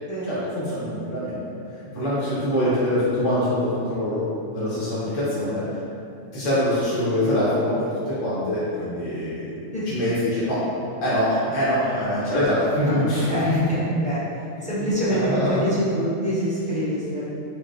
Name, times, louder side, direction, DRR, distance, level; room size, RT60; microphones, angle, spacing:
voice 1, 0.2-1.4 1.7-5.6 6.3-9.6 9.8-10.6 11.0-13.7 14.8-15.6, left 1 dB, 85° left, -10 dB, 1.1 m, -24 dB
voice 2, 12.8-14.2 14.6-17.3, equal, 10° left, -10 dB, 0.3 m, -26 dB
4.4 x 2.1 x 2.3 m, 2.7 s
omnidirectional pair, 1.3 m